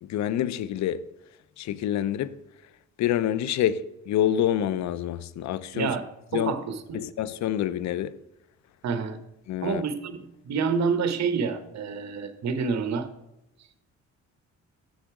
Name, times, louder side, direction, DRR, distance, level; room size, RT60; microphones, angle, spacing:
voice 1, 0.0-1.0 1.6-2.3 3.0-6.0 6.3-6.5 6.9-8.2 9.5-9.8, left 11 dB, 65° left, 0.5 m, -27 dB
voice 2, 5.7-6.0 6.3-7.0 8.8-9.2 9.6-10.2 10.5-13.1, right 5 dB, 60° right, 0.9 m, -28 dB
6.9 x 6.4 x 4.7 m
cardioid pair, 90°, 30 cm